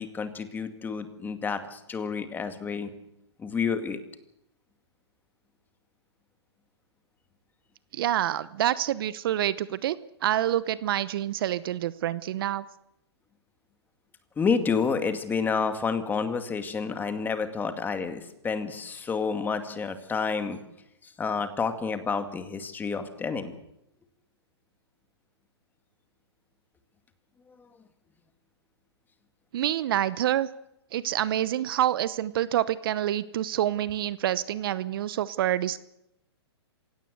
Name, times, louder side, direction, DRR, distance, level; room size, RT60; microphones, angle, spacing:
voice 1, 0.0-2.9 3.4-4.0 14.4-20.6 21.0-23.5, left 5 dB, 15° left, 9 dB, 2.2 m, -29 dB
voice 2, 7.9-12.6 29.5-30.5 30.9-35.8, right 12 dB, 55° right, 17 dB, 0.9 m, -27 dB
26.5 x 17.0 x 8.0 m, 0.83 s
hypercardioid pair, 130°, 14 cm